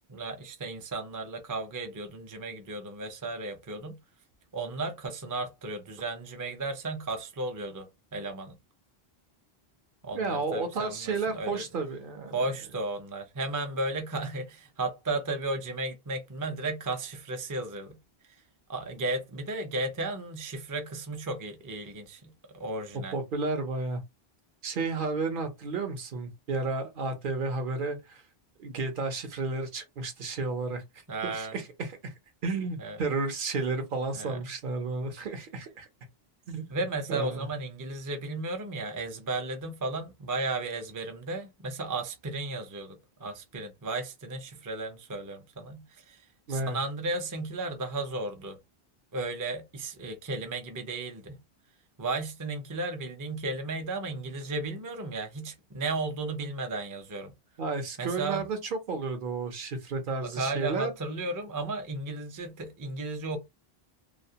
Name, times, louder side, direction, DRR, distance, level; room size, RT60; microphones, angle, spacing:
voice 1, 0.1-4.0 4.5-8.6 10.0-11.6 12.3-18.0 18.7-23.2 31.1-31.5 32.8-33.0 34.1-34.4 36.7-48.6 49.1-51.4 52.0-57.3 58.0-58.5 60.2-63.4, right 2 dB, 30° right, 0.4 m, -34 dB
voice 2, 10.1-12.4 23.1-24.0 24.6-28.2 28.6-30.8 31.2-32.1 32.4-35.9 36.5-36.7 37.1-37.5 46.5-46.8 57.6-60.9, right 3 dB, 60° right, 0.8 m, -32 dB
2.3 x 2.1 x 2.7 m
omnidirectional pair, 1.0 m